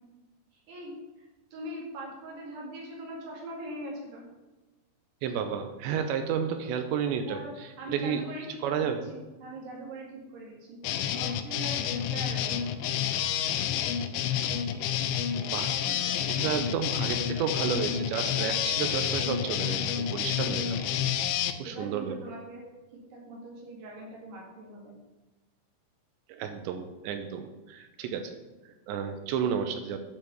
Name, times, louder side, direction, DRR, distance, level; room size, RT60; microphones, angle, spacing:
voice 1, 0.5-4.2 7.1-7.5 7.8-10.8 11.1-12.6 15.9-16.5 21.6-22.6 22.9-24.9, right 1 dB, 65° right, -3 dB, 4.1 m, -42 dB
voice 2, 5.2-8.2 8.6-9.0 15.5-15.8 16.3-20.9 21.6-22.2 26.3-28.4 28.7-30.0, right 7 dB, 85° right, 7 dB, 2.9 m, -32 dB
sound 1, 10.8-21.5, left 9 dB, 85° left, 2.9 m, -29 dB
10.5 x 5.3 x 6.8 m, 1.1 s
omnidirectional pair, 5.2 m